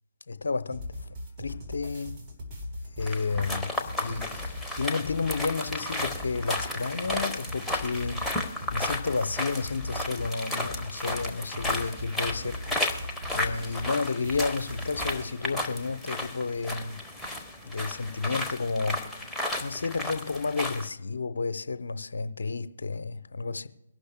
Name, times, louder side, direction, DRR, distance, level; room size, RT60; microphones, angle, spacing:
voice 1, 0.3-1.0 1.4-2.1 3.0-3.7 4.0-8.4 8.7-13.0 13.3-17.0 17.7-19.3 19.6-23.7, left 4 dB, 65° left, 0.8 m, -31 dB
sound 1, 0.7-15.2, left 1 dB, 20° right, 3.8 m, -40 dB
sound 2, 3.0-20.9, left 1 dB, ahead, 1.0 m, -34 dB
23.5 x 11.5 x 2.2 m
figure-of-eight pair, 140°, 0 cm